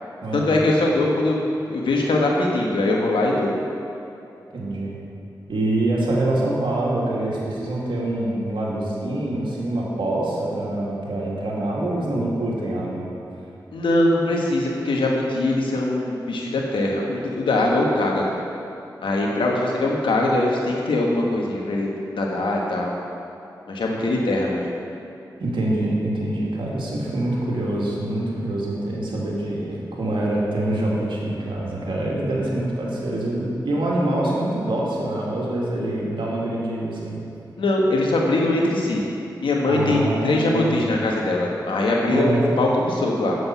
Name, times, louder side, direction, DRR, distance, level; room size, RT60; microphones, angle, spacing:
voice 1, 0.3-1.4 1.7-3.5 13.7-18.4 19.0-22.9 23.7-24.7 37.6-39.0 39.4-42.3 42.6-43.4, left 2 dB, 85° left, -1 dB, 1.4 m, -22 dB
voice 2, 4.5-5.0 5.5-13.1 25.4-37.2 39.7-40.8 42.1-42.4, right 1 dB, 75° right, -4 dB, 2.2 m, -25 dB
7.9 x 7.9 x 5.6 m, 2.7 s
cardioid pair, 40°, 8 cm